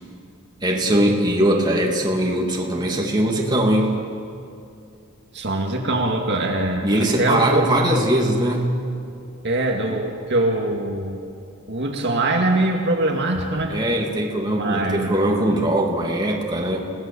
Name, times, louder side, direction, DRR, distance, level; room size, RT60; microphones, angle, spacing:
voice 1, 0.6-3.9 6.8-8.8 13.7-16.9, right 1 dB, 20° right, -1 dB, 2.6 m, -21 dB
voice 2, 5.3-7.6 9.4-11.2 11.7-13.8 14.6-15.2, right 2 dB, 50° right, 1 dB, 2.2 m, -22 dB
30.0 x 18.0 x 7.0 m, 2.5 s
head